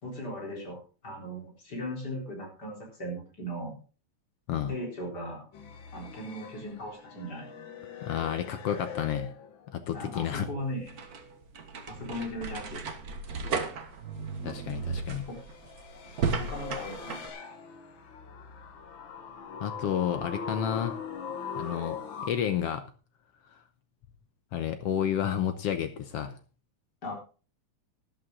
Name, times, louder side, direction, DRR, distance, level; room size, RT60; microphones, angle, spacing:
voice 1, 0.0-3.7 4.7-5.4 5.9-7.5 9.9-11.0 11.9-12.8 15.3-15.4 16.4-17.2 27.0-27.1, equal, 35° left, -1 dB, 4.5 m, -38 dB
sound 1, 5.5-9.9 10.2-11.4 14.7-22.3, left 6 dB, 50° left, 1.6 m, -42 dB
voice 2, 8.0-9.3 9.7-10.5 14.4-15.3 19.6-21.0 21.6-22.8 24.5-26.4, left 9 dB, 65° left, 9 dB, 1.6 m, -31 dB
sound 2, 10.6-17.3, right 5 dB, 50° right, 1.2 m, -35 dB
12.5 x 11.5 x 3.8 m, 0.36 s
omnidirectional pair, 3.4 m